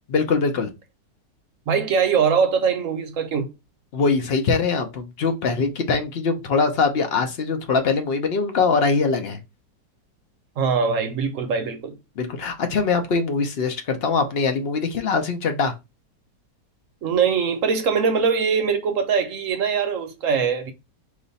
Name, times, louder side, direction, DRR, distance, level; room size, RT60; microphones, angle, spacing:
voice 1, 0.1-0.7 3.9-9.4 12.2-15.7, left 4 dB, 60° left, 0.6 m, -22 dB
voice 2, 1.7-3.5 10.6-11.9 17.0-20.7, right 6 dB, 60° right, 0.9 m, -22 dB
5.0 x 2.5 x 4.0 m
omnidirectional pair, 1.9 m